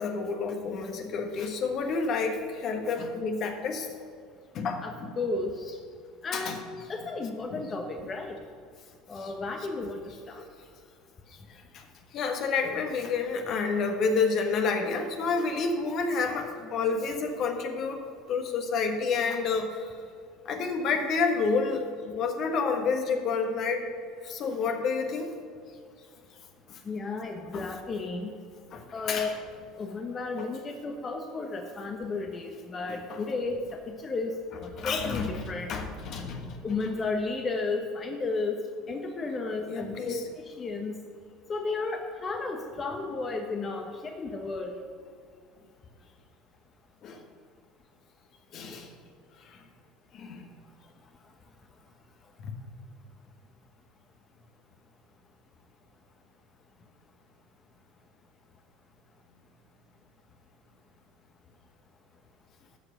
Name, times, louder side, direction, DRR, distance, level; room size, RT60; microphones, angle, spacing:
voice 1, 0.0-3.9 4.5-5.1 6.3-6.6 7.5-7.6 9.2-9.3 11.7-11.8 12.1-18.0 18.3-19.9 20.4-23.9 24.2-25.3 26.7-26.8 27.5-27.7 28.7-29.3 30.4-30.5 32.9-33.2 34.8-36.6 39.7-40.2 47.0-47.2 48.5-48.9 49.5-49.6 50.1-50.4 52.4-52.5, left 4 dB, 55° left, 5 dB, 1.3 m, -29 dB
voice 2, 4.8-5.7 6.2-6.6 6.9-8.4 9.1-10.0 10.3-10.4 26.9-28.3 28.9-29.3 29.8-35.7 36.6-38.6 38.9-40.2 40.6-40.9 41.5-44.8, left 3 dB, 35° left, 3 dB, 1.0 m, -33 dB
13.0 x 4.8 x 6.5 m, 2.1 s
hypercardioid pair, 80°, 0 cm